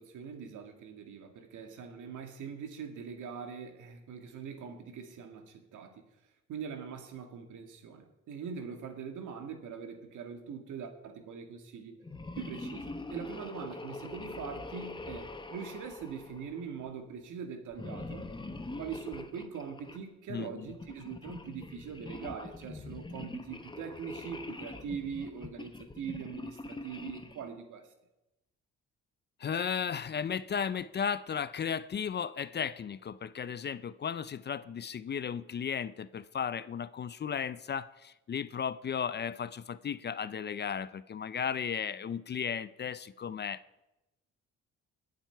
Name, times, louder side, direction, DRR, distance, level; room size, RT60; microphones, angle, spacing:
voice 1, 0.0-6.0 6.5-12.0 12.4-18.3 18.8-27.8, right 6 dB, 80° right, 5 dB, 2.1 m, -42 dB
sound 1, 12.0-16.9 17.7-20.0 20.7-27.5, left 2 dB, 15° left, 1.0 m, -44 dB
voice 2, 20.3-20.7 29.4-43.8, left 7 dB, 35° left, 17 dB, 0.5 m, -35 dB
20.5 x 7.7 x 4.6 m, 0.94 s
cardioid pair, 90°, 30 cm